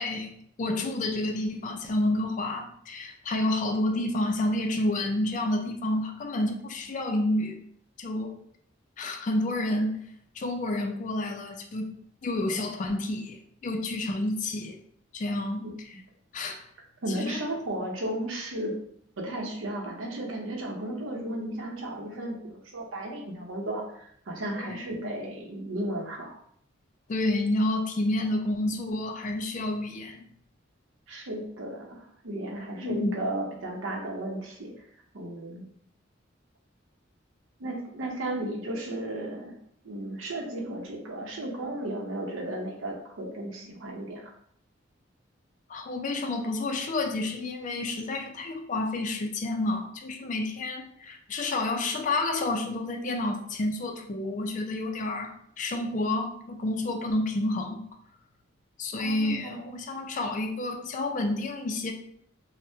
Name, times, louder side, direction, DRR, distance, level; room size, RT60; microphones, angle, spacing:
voice 1, 0.0-7.6 8.0-8.4 9.0-10.0 10.4-11.9 12.2-14.8 15.1-15.6 16.3-16.6 17.1-17.4 24.6-25.0 27.1-30.2 32.7-33.2 45.7-57.8 58.8-61.9, left 2 dB, 40° left, 4 dB, 0.3 m, -29 dB
voice 2, 17.0-18.8 19.2-26.3 31.1-34.7 35.1-35.6 37.6-39.6 39.8-44.3 58.9-59.7, right 1 dB, 85° right, 1 dB, 0.7 m, -34 dB
3.4 x 2.1 x 2.7 m, 0.66 s
head